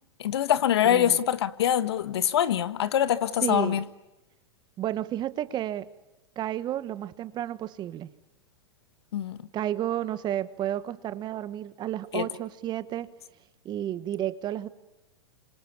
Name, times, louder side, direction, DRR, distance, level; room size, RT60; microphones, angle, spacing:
voice 1, 0.2-3.8 9.1-9.4 12.1-12.2, left 10 dB, 75° left, 1.5 m, -24 dB
voice 2, 0.8-1.2 3.4-3.8 4.8-5.9 6.3-8.1 9.5-13.1 13.6-14.7, right 12 dB, 30° right, 1.5 m, -31 dB
29.0 x 26.5 x 7.1 m
hypercardioid pair, 110°, 14 cm